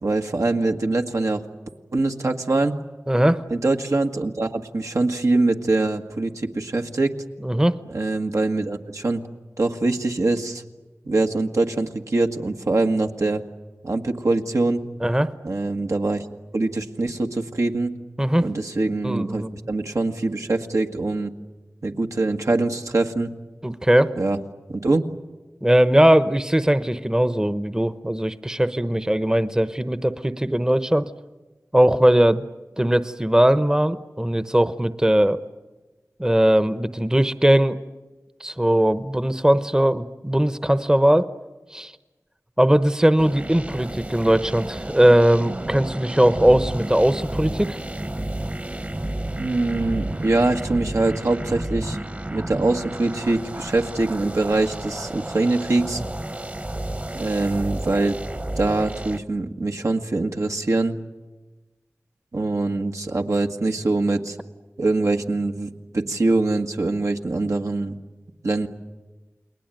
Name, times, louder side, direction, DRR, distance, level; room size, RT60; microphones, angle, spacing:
voice 1, 0.0-1.4 1.9-2.7 3.5-7.2 7.9-9.2 9.6-10.6 11.0-13.4 13.8-14.8 15.4-16.3 16.5-17.9 18.4-21.3 21.8-23.3 24.2-24.4 24.7-25.0 49.4-52.0 52.3-56.0 57.1-58.2 58.6-61.0 62.3-64.4 64.8-68.0 68.4-68.7, right 2 dB, 75° right, 4 dB, 1.8 m, -23 dB
voice 2, 3.1-3.4 7.4-7.8 15.0-15.3 18.2-18.5 19.0-19.7 23.6-24.1 25.6-31.1 31.7-32.5 32.8-35.4 36.2-37.8 38.4-41.3 41.7-41.9 42.6-47.8, right 1 dB, 15° right, 13 dB, 0.9 m, -19 dB
sound 1, 43.2-59.2, right 1 dB, 30° right, 1.3 m, -31 dB
29.5 x 20.5 x 9.2 m, 1.2 s
wide cardioid pair, 60°, 5 cm